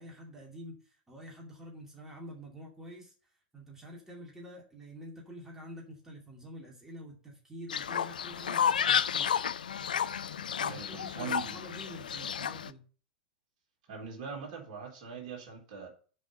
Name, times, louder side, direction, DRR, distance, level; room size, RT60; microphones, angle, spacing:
voice 1, 0.0-9.4 10.6-12.9, equal, 10° right, 2.6 m, -47 dB
Fowl, 7.7-12.7, left 8 dB, 70° left, 0.5 m, -31 dB
voice 2, 10.6-11.6 13.9-15.9, right 6 dB, 50° right, 3.8 m, -41 dB
7.4 x 5.4 x 6.6 m
figure-of-eight pair, 95°, 5 cm